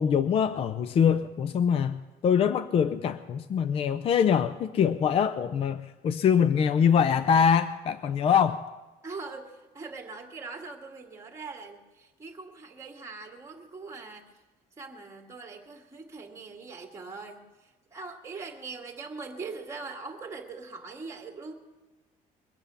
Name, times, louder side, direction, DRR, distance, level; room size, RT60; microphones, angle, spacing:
voice 1, 0.0-8.6, left 7 dB, 40° left, 12 dB, 0.5 m, -24 dB
voice 2, 9.0-14.4 14.8-21.5, right 4 dB, 20° right, 3 dB, 1.9 m, -42 dB
22.0 x 7.9 x 6.8 m, 1.2 s
cardioid pair, 130°, 15 cm